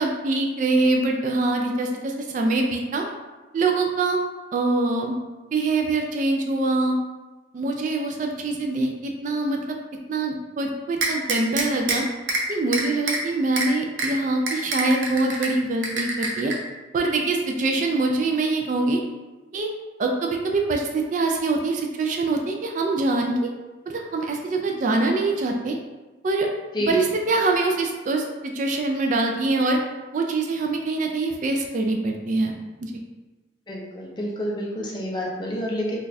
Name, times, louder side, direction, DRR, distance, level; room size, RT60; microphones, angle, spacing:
voice 1, 0.0-3.0 3.5-4.2 4.5-5.1 5.5-7.0 7.5-9.8 10.1-12.1 12.5-16.5 16.9-19.0 19.5-19.7 20.0-23.5 23.9-25.8 26.2-26.5 26.9-29.8 30.1-33.0, right 2 dB, 45° right, 2 dB, 0.3 m, -24 dB
sound 1, 11.0-12.0 12.3-12.4 12.7-13.2 13.6-13.7 14.0-14.1 14.5-15.5 15.8-16.5, right 3 dB, 85° right, 0.6 m, -25 dB
voice 2, 33.7-36.0, equal, 25° left, -3 dB, 0.5 m, -28 dB
3.8 x 2.4 x 2.7 m, 1.2 s
head